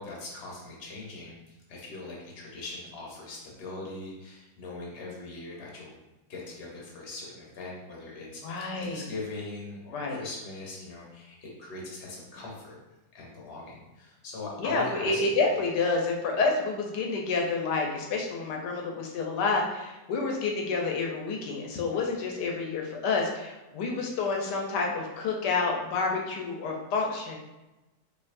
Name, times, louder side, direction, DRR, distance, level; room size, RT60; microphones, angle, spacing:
voice 1, 0.0-5.9 6.3-12.8 13.1-15.4, left 2 dB, 45° left, -3 dB, 1.0 m, -41 dB
voice 2, 8.4-9.1 9.9-10.2 14.6-27.4, left 4 dB, 85° left, 1 dB, 1.3 m, -29 dB
4.6 x 2.8 x 2.5 m, 1.0 s
omnidirectional pair, 1.8 m